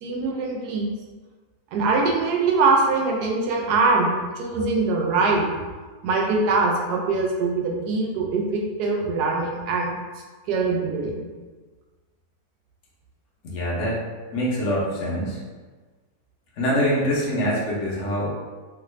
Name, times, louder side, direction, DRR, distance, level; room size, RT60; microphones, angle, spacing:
voice 1, 0.0-0.9 1.7-5.5 6.0-9.9 10.5-11.3, right 3 dB, 80° right, 0 dB, 1.1 m, -23 dB
voice 2, 13.4-14.0 14.3-15.4 16.6-18.3, equal, 55° left, -5 dB, 0.9 m, -24 dB
3.0 x 2.4 x 3.1 m, 1.4 s
omnidirectional pair, 1.7 m